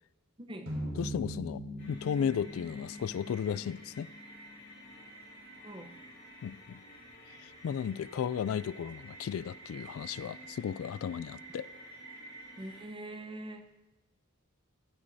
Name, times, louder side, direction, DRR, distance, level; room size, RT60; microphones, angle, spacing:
voice 1, 0.4-0.7 5.6-6.0 11.1-11.2 12.6-13.7, right 1 dB, 25° right, 0.8 m, -43 dB
sound 1, 0.7-5.0, equal, 75° right, 4.3 m, -42 dB
voice 2, 1.0-1.6 1.9-4.1 6.4-6.8 7.4-11.7, left 8 dB, 75° left, 0.3 m, -34 dB
sound 2, 1.8-12.9, right 2 dB, 55° left, 3.1 m, -51 dB
15.5 x 12.0 x 2.7 m
head